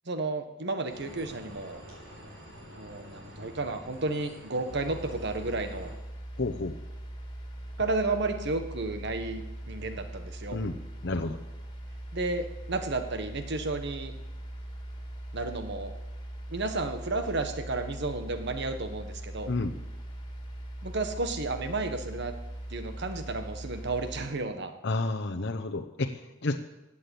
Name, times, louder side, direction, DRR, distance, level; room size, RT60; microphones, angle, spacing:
voice 1, 0.1-1.8 2.8-5.9 7.8-10.6 12.1-14.1 15.3-15.9 16.5-19.5 20.8-22.3 22.7-24.7, right 3 dB, 60° right, 8 dB, 1.4 m, -32 dB
sound 1, 0.9-5.9, equal, 80° right, 5.6 m, -47 dB
sound 2, 4.7-24.3, right 1 dB, 25° left, 2.4 m, -41 dB
voice 2, 6.4-6.7 10.5-11.4 19.5-19.8 24.8-26.5, left 2 dB, 60° left, 3 dB, 0.8 m, -31 dB
15.5 x 8.7 x 8.4 m, 1.0 s
head